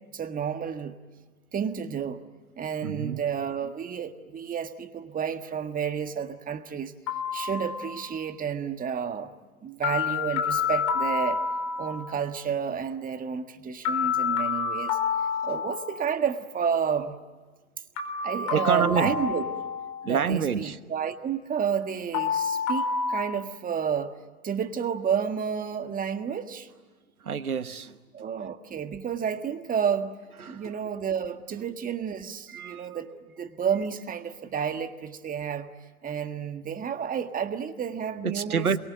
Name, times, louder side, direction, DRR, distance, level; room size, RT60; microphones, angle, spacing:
voice 1, 0.1-1.0 1.5-2.2 2.6-6.9 7.3-9.3 9.6-11.4 11.8-15.0 15.4-17.1 18.2-19.5 20.0-24.1 24.4-26.7 28.1-30.2 30.5-33.1 33.4-35.7 36.0-38.7, right 7 dB, 20° right, 8 dB, 1.6 m, -30 dB
voice 2, 2.8-3.2 18.5-19.1 20.1-20.8 27.2-28.0 30.4-30.6 32.5-33.0 38.2-38.8, right 7 dB, 90° right, 13 dB, 1.3 m, -27 dB
sound 1, 7.1-8.2 9.8-12.1 13.8-16.2 18.0-20.3 22.1-23.2, left 6 dB, 40° left, 4.3 m, -29 dB
27.5 x 23.0 x 9.2 m, 1.3 s
hypercardioid pair, 105°, 43 cm